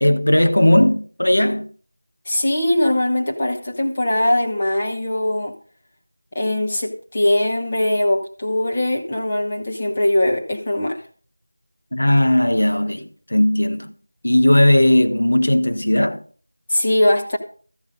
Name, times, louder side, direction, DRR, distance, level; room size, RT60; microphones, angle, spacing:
voice 1, 0.0-1.7 11.9-13.9 14.2-16.2, left 1 dB, 85° left, 1.4 m, -17 dB
voice 2, 2.3-5.6 6.3-11.0 16.7-17.4, left 1 dB, 15° left, 1.1 m, -21 dB
13.5 x 8.1 x 5.2 m
figure-of-eight pair, 180°, 0 cm